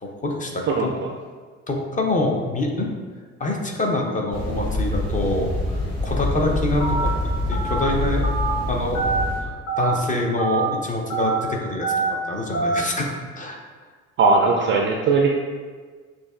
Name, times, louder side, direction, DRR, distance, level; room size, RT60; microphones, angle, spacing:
voice 1, 0.0-0.9 1.7-2.9 3.4-7.1 7.5-8.2 8.7-9.1 9.8-11.9 12.3-13.6, left 2 dB, 20° left, 0 dB, 0.6 m, -25 dB
sound 1, 4.3-9.4, left 1 dB, 85° left, 1.1 m, -26 dB
Telephone, 6.8-7.1 7.5-7.8 8.2-8.5 8.9-9.2 9.7-9.9 10.4-10.6 11.1-11.4 11.8-12.1 12.5-12.8, right 5 dB, 45° left, 1.0 m, -24 dB
voice 2, 14.2-15.3, right 3 dB, 30° right, 0 dB, 0.4 m, -18 dB
6.2 x 2.4 x 2.4 m, 1.5 s
figure-of-eight pair, 50°, 38 cm